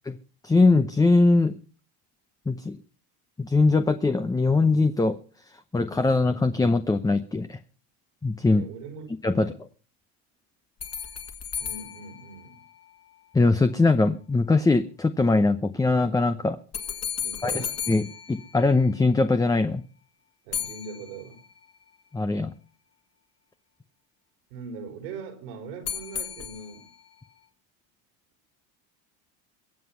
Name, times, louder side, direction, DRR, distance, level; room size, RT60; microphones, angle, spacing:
voice 1, 0.4-1.5 2.5-2.8 3.4-5.2 5.7-7.6 8.2-8.6 9.2-9.5 13.3-16.6 17.4-18.0 18.3-19.8 22.1-22.5, left 3 dB, 10° left, 0.7 m, -21 dB
voice 2, 8.5-9.6 11.6-12.6 17.2-17.8 20.4-21.4 24.5-26.9, right 5 dB, 90° right, 4.3 m, -41 dB
sound 1, 10.8-13.2 16.7-19.2 20.5-21.7 25.8-27.1, left 8 dB, 35° left, 2.2 m, -35 dB
23.0 x 7.7 x 5.7 m
supercardioid pair, 110°, 43 cm